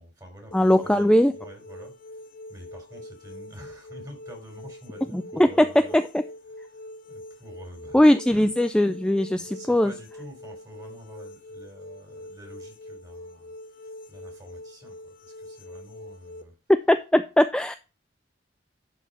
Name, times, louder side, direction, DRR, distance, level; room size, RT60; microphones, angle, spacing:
voice 1, 0.0-5.9 6.4-8.6 9.4-16.6, equal, 20° right, 3.7 m, -47 dB
sound 1, 0.5-16.4, left 1 dB, 50° left, 0.8 m, -44 dB
voice 2, 0.5-1.3 5.1-5.7 5.9-6.2 7.9-9.9 16.9-17.7, left 1 dB, 5° left, 0.3 m, -20 dB
11.5 x 4.6 x 4.2 m
head